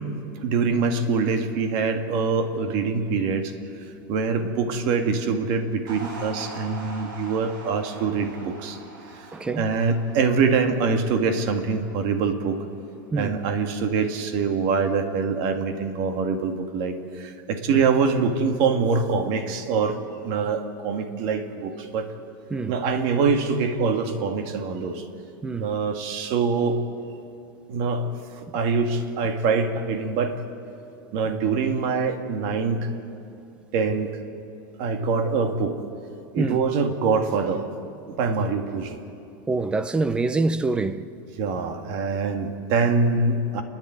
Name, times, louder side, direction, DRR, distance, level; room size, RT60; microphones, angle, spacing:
voice 1, 0.4-3.5 4.1-8.8 9.2-9.3 9.6-12.6 13.2-22.1 22.7-25.0 25.6-26.8 27.7-28.1 28.5-30.4 31.1-32.9 33.7-34.1 34.8-35.7 36.3-37.7 38.2-39.0 41.4-43.6, right 5 dB, 45° right, 1.8 m, -24 dB
sound 1, 5.9-12.4, right 2 dB, 75° right, 5.9 m, -42 dB
voice 2, 9.3-9.7 13.1-13.4 17.7-17.8 22.5-22.8 25.4-25.8 36.4-36.6 39.5-41.1, right 3 dB, 10° right, 0.5 m, -25 dB
29.0 x 10.5 x 9.4 m
supercardioid pair, 165°, 11 cm